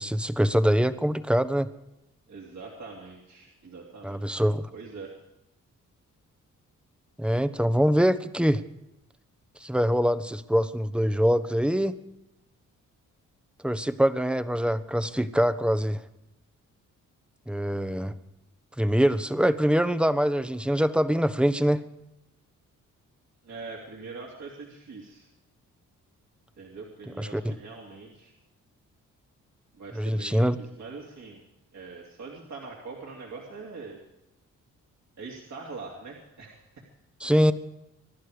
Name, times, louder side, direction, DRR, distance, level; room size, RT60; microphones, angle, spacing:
voice 1, 0.0-1.7 4.0-4.7 7.2-8.6 9.6-11.9 13.6-16.0 17.5-18.1 18.8-21.8 27.2-27.5 30.0-30.6 37.2-37.5, equal, 5° right, 12 dB, 1.1 m, -24 dB
voice 2, 2.3-4.5 4.7-5.1 23.4-25.3 26.6-28.3 29.7-31.4 31.7-34.0 35.2-36.8, right 4 dB, 55° right, -2 dB, 2.9 m, -43 dB
24.0 x 11.0 x 5.0 m, 0.88 s
supercardioid pair, 60°, 33 cm